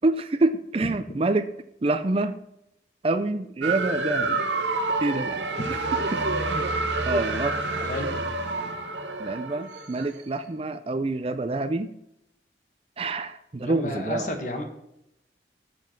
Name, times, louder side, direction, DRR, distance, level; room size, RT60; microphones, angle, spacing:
voice 1, 0.0-1.5 1.8-2.3 3.0-4.4 5.0-5.4 5.7-5.8 6.1-6.7 7.0-7.6 9.2-11.9 13.0-14.4, right 2 dB, 30° right, 11 dB, 0.4 m, -27 dB
sound 1, 3.6-10.2, right 3 dB, 85° right, 1.0 m, -28 dB
voice 2, 7.8-8.2 13.6-14.7, left 1 dB, 45° left, 4 dB, 1.5 m, -32 dB
7.6 x 7.1 x 5.9 m, 0.82 s
head